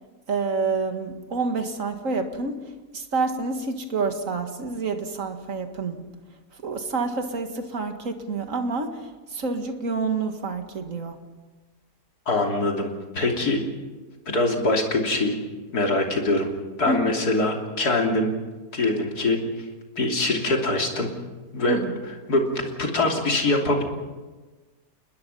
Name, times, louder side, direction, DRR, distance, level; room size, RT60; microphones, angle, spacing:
voice 1, 0.3-6.0 6.5-11.2 16.9-17.2 21.7-22.0, right 4 dB, 55° right, 6 dB, 2.2 m, -28 dB
voice 2, 12.3-13.6 14.3-15.4 15.7-16.5 16.8-18.3 18.7-19.4 20.0-21.1 21.5-21.8 22.3-23.8, left 2 dB, 80° left, 1 dB, 3.6 m, -23 dB
28.5 x 20.5 x 5.6 m, 1.3 s
omnidirectional pair, 1.6 m